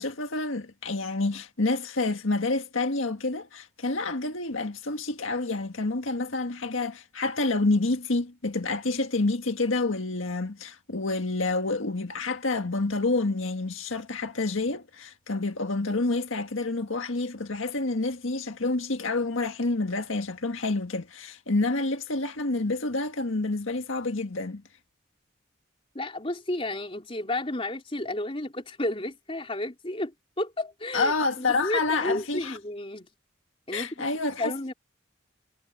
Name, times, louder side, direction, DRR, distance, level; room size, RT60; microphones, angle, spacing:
voice 1, 0.0-24.6 30.9-32.6 33.7-34.5, left 3 dB, 80° left, 1.7 m, -28 dB
voice 2, 25.9-33.1 33.7-34.0 34.4-34.7, left 1 dB, 30° left, 4.0 m, -32 dB
head